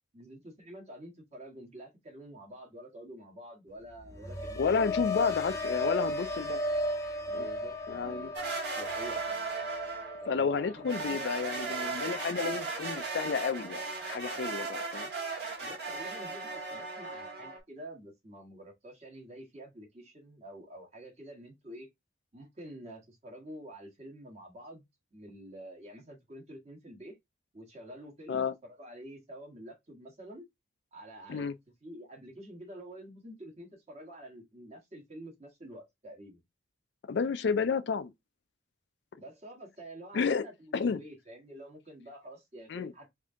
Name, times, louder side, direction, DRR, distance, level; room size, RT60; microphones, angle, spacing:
voice 1, 0.1-5.3 7.3-9.5 10.2-10.9 15.6-21.9 22.3-24.8 25.1-27.2 27.5-30.4 30.9-31.5 31.8-36.4 39.2-43.1, right 1 dB, 35° right, 1.4 m, -48 dB
sound 1, 3.8-13.9 14.3-14.7, left 2 dB, 15° left, 0.6 m, -36 dB
voice 2, 4.6-6.6 7.3-7.5 7.9-8.3 10.3-15.1 28.3-28.5 31.3-31.5 37.1-38.1 40.1-40.4 40.7-41.0 42.7-42.9, left 5 dB, 60° left, 0.4 m, -31 dB
sound 2, 8.3-10.2 10.8-17.6, right 4 dB, 55° right, 1.6 m, -37 dB
3.5 x 2.7 x 3.6 m
head